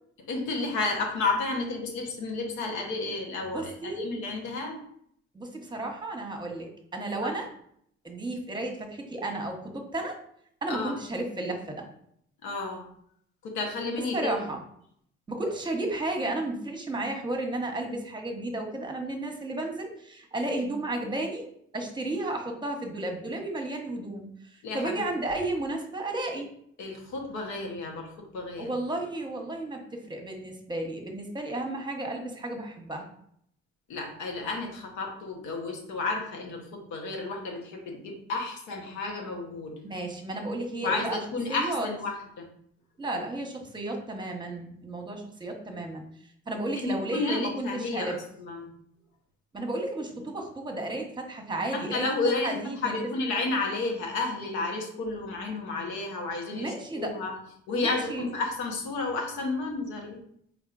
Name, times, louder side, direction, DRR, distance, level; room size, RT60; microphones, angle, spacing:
voice 1, 0.3-4.8 10.7-10.9 12.4-12.8 13.4-14.5 24.6-25.0 26.8-28.7 33.9-39.8 40.8-42.5 46.7-48.7 51.7-57.3 57.7-60.2, left 3 dB, 80° left, 1 dB, 1.1 m, -32 dB
voice 2, 3.5-4.1 5.3-7.5 8.0-10.2 10.6-11.9 14.0-14.6 15.3-21.5 21.7-26.5 28.6-33.1 39.8-41.2 41.5-41.9 43.0-46.1 46.5-48.2 49.5-52.1 52.4-53.0 56.5-57.2 57.7-58.3, right 2 dB, 15° right, 2 dB, 1.1 m, -33 dB
4.2 x 3.7 x 2.5 m, 0.68 s
supercardioid pair, 65°, 29 cm